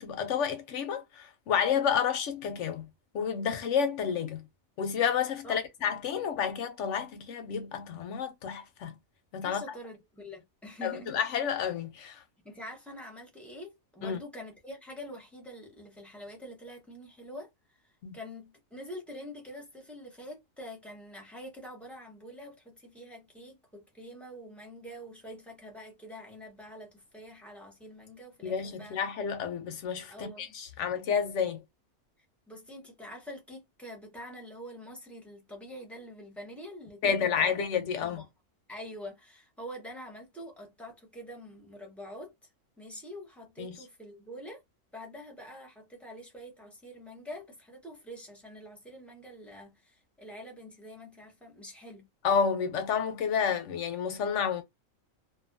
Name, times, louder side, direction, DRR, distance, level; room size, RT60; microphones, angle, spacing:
voice 1, 0.0-2.9 3.1-4.4 4.8-8.9 9.3-9.6 10.8-12.2 14.0-14.2 18.0-18.2 28.4-31.6 37.0-38.2 43.6-43.8 52.2-54.6, left 7 dB, 70° left, 0.8 m, -30 dB
voice 2, 9.4-11.1 12.4-29.0 30.1-30.5 32.5-37.5 38.0-38.3 38.7-42.3 42.8-44.6 44.9-52.1, equal, ahead, 0.7 m, -45 dB
2.5 x 2.3 x 2.5 m
omnidirectional pair, 1.4 m